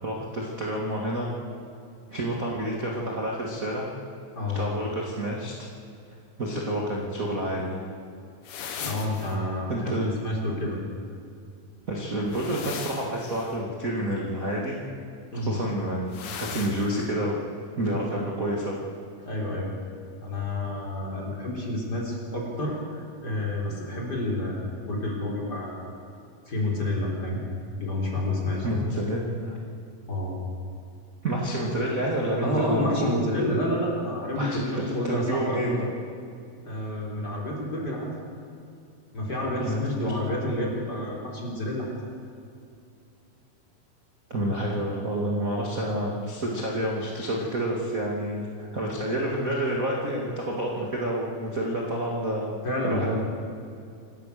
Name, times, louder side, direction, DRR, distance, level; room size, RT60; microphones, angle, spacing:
voice 1, 0.0-1.3 2.1-3.9 4.5-5.5 6.4-7.8 9.7-10.1 11.9-14.9 15.3-17.4 17.8-18.8 28.6-29.6 31.2-33.1 34.4-35.9 39.6-40.1 44.3-52.5 52.8-53.2, right 1 dB, 30° right, -2 dB, 1.8 m, -29 dB
voice 2, 4.3-4.7 8.8-10.8 15.3-15.6 19.2-19.9 20.2-25.8 26.5-27.4 27.8-28.7 30.1-30.4 32.4-35.7 36.6-38.1 39.1-41.9 52.6-53.2, left 1 dB, 25° left, -2 dB, 3.9 m, -29 dB
sound 1, 8.5-9.4 12.3-13.6 16.1-17.0, left 6 dB, 85° left, 3.6 m, -37 dB
27.0 x 14.5 x 6.7 m, 2.5 s
omnidirectional pair, 4.4 m